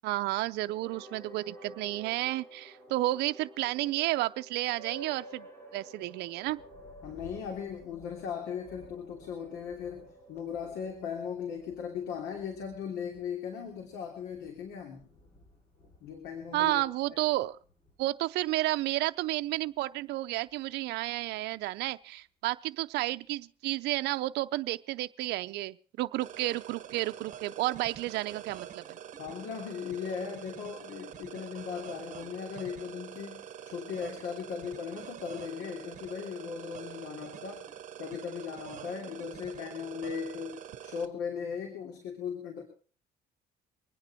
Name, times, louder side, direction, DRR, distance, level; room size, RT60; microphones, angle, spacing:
voice 1, 0.0-5.5 5.7-6.6 16.5-17.6 18.0-29.0, right 17 dB, 80° right, 10 dB, 0.6 m, -31 dB
sound 1, 0.6-12.6, right 2 dB, 10° left, 3.7 m, -51 dB
Thunder, 6.4-22.5 23.2-23.3 23.9-24.3, left 1 dB, 35° left, 6.4 m, -60 dB
voice 2, 7.0-15.0 16.0-16.8 17.1-17.2 29.2-37.6 38.0-42.6, left 7 dB, 85° left, 2 dB, 3.1 m, -38 dB
sound 2, 26.2-41.0, right 9 dB, 50° right, 1.4 m, -45 dB
24.5 x 9.7 x 4.4 m, 0.41 s
cardioid pair, 110°, 17 cm